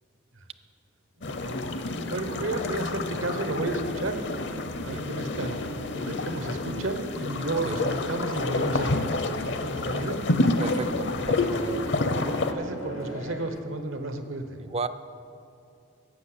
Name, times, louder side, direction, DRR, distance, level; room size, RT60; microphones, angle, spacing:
sound 1, 1.2-12.5, left 2 dB, 60° left, 0.7 m, -29 dB
sound 2, 1.2-13.4, equal, 55° right, 0.8 m, -42 dB
voice 1, 1.3-1.6 2.1-4.2 4.8-5.6 5.9-8.9 9.3-10.2 12.0-12.1 12.5-14.4, right 2 dB, 80° right, 7 dB, 1.1 m, -32 dB
sound 3, 8.0-13.6, left 2 dB, 85° left, 0.9 m, -43 dB
voice 2, 10.6-11.8 14.6-14.9, right 3 dB, 30° right, 11 dB, 0.3 m, -33 dB
12.0 x 7.8 x 8.1 m, 2.6 s
head